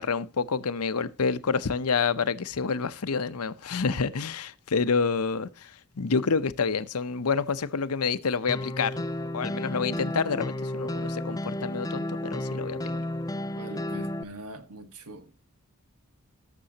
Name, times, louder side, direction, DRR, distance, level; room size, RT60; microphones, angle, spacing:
voice 1, 0.0-9.0 9.3-13.0, left 5 dB, 80° left, 0.7 m, -28 dB
sound 1, 8.5-14.2, left 1 dB, 15° left, 0.4 m, -32 dB
voice 2, 13.6-15.4, right 2 dB, 85° right, 1.6 m, -43 dB
19.5 x 6.8 x 2.9 m
head